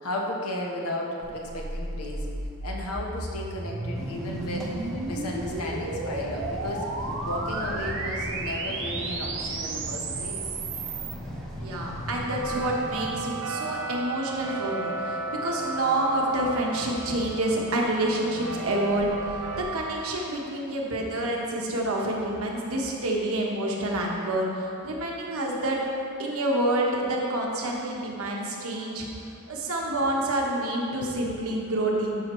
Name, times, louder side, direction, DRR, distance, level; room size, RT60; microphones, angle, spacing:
voice 1, 0.0-2.3 2.6-6.9 7.2-10.4 31.0-31.1, left 1 dB, 85° left, -1 dB, 1.1 m, -34 dB
sound 1, 1.2-11.1, right 3 dB, 55° right, 0.8 m, -34 dB
sound 2, 1.2-2.1 5.1-5.2 5.4-19.6, right 3 dB, 90° right, 0.7 m, -37 dB
sound 3, 3.9-13.1, equal, 5° left, 0.8 m, -37 dB
voice 2, 11.6-25.8 26.2-29.1 29.5-32.2, right 1 dB, 70° right, -1 dB, 1.2 m, -28 dB
12.0 x 5.8 x 3.1 m, 2.7 s
head